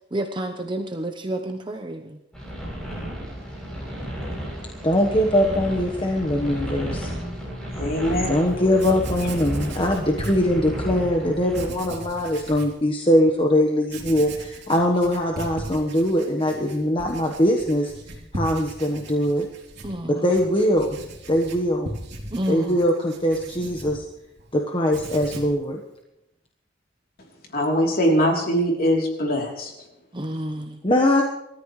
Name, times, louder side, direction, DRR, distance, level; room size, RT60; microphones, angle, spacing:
voice 1, 0.1-2.2 19.8-20.2 22.3-22.8 30.1-30.8, right 1 dB, 25° right, 5 dB, 0.9 m, -30 dB
sound 1, 2.3-11.7, equal, 5° left, 7.8 m, -33 dB
voice 2, 4.8-7.1 8.3-17.9 18.3-19.5 20.1-21.0 21.3-21.9 22.5-24.0 24.5-25.8 30.8-31.2, equal, 25° left, 1 dB, 1.3 m, -22 dB
voice 3, 7.7-8.3 27.5-29.7, equal, 50° left, 0 dB, 3.4 m, -22 dB
Writing, 8.5-8.6 8.8-10.9 11.5-12.8 13.2-13.3 13.8-24.5 24.8-25.6, right 1 dB, 60° right, 3.3 m, -38 dB
27.5 x 14.0 x 3.2 m, 0.83 s
head